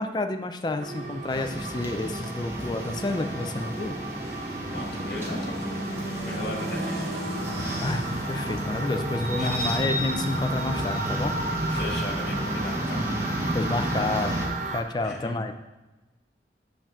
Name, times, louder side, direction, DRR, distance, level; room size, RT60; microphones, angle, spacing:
voice 1, 0.0-4.0 7.6-11.4 11.6-11.7 13.5-14.4 14.7-15.5, left 2 dB, 25° left, 7 dB, 0.4 m, -30 dB
sound 1, 0.6-14.9, equal, 60° right, 2.2 m, -38 dB
sound 2, 0.8-14.8, right 2 dB, 40° right, 0.5 m, -35 dB
sound 3, 1.3-14.5, right 1 dB, 15° right, 0.8 m, -32 dB
voice 2, 4.7-5.7 6.3-7.2 9.4-9.9 11.7-13.0 15.0-15.5, left 1 dB, 60° left, -2 dB, 1.7 m, -36 dB
7.7 x 7.1 x 2.4 m, 1.1 s
head